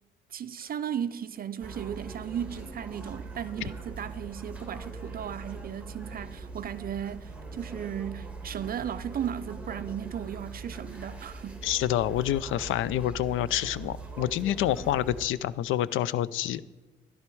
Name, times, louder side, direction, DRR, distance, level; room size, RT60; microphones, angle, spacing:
voice 1, 0.3-11.6, right 9 dB, 50° right, 0.4 m, -36 dB
sound 1, 1.6-15.3, right 3 dB, 5° right, 1.4 m, -41 dB
voice 2, 11.6-16.6, left 12 dB, 80° left, 0.4 m, -27 dB
11.5 x 10.5 x 4.6 m
cardioid pair, 90°, 20 cm